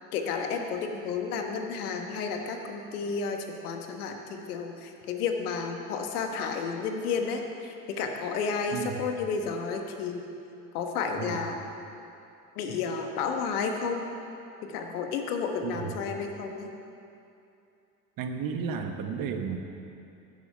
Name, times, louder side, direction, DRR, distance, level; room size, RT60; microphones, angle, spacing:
voice 1, 0.1-10.3 10.7-11.6 12.6-14.1 14.6-16.7, left 5 dB, 70° left, 4 dB, 1.3 m, -32 dB
voice 2, 15.6-15.9 18.2-19.6, right 6 dB, 45° right, 5 dB, 1.3 m, -33 dB
15.0 x 7.2 x 6.8 m, 2.7 s
figure-of-eight pair, 60°, 47 cm